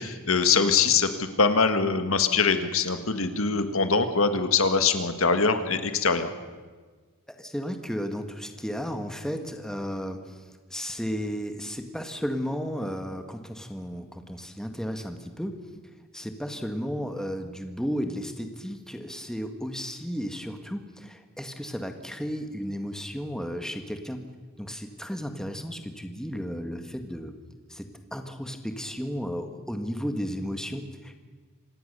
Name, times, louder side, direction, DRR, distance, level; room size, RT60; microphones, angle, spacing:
voice 1, 0.0-6.3, left 5 dB, 65° left, 8 dB, 1.8 m, -23 dB
voice 2, 7.3-10.4 10.7-15.6 16.1-24.2 24.6-27.3 27.7-31.1, equal, 5° left, 6 dB, 1.7 m, -34 dB
26.5 x 18.0 x 6.9 m, 1.4 s
head